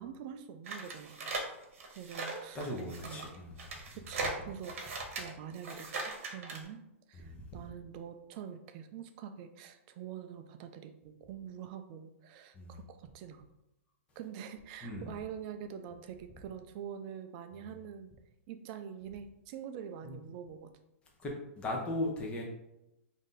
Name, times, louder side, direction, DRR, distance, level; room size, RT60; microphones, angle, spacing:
voice 1, 0.0-1.3 1.9-2.7 3.0-3.2 3.9-6.8 7.1-13.5 14.2-18.1 18.5-20.7, right 8 dB, 35° right, 8 dB, 0.3 m, -45 dB
sound 1, 0.7-6.7, right 3 dB, 65° right, 1.0 m, -39 dB
voice 2, 2.5-3.6 7.1-7.5 12.5-12.8 14.8-15.1 17.6-17.8 20.1-20.2 21.2-22.4, left 1 dB, 15° left, -2 dB, 0.7 m, -38 dB
3.7 x 2.7 x 3.7 m, 0.87 s
hypercardioid pair, 145°, 8 cm